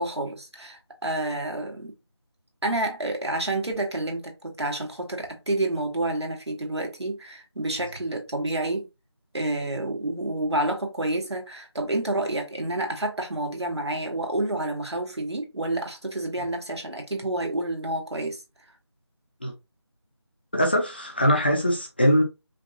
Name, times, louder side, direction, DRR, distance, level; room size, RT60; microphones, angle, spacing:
voice 1, 0.0-2.0 2.6-8.9 9.3-18.4, right 2 dB, 70° right, 1.8 m, -29 dB
voice 2, 20.5-22.2, equal, 20° left, 0.8 m, -22 dB
5.1 x 2.7 x 2.8 m
figure-of-eight pair, 175°, 15 cm